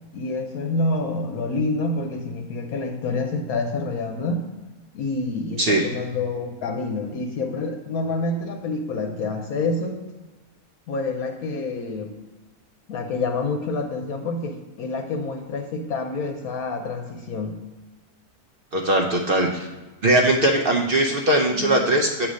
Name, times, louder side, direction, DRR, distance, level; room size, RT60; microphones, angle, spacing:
voice 1, 0.1-4.5 4.9-10.0 10.9-12.2 12.9-17.6 21.5-21.8, left 3 dB, 75° left, 3 dB, 1.1 m, -27 dB
voice 2, 18.7-19.7 20.0-22.3, right 1 dB, 50° right, 0 dB, 0.7 m, -20 dB
8.2 x 3.1 x 6.2 m, 1.2 s
omnidirectional pair, 1.6 m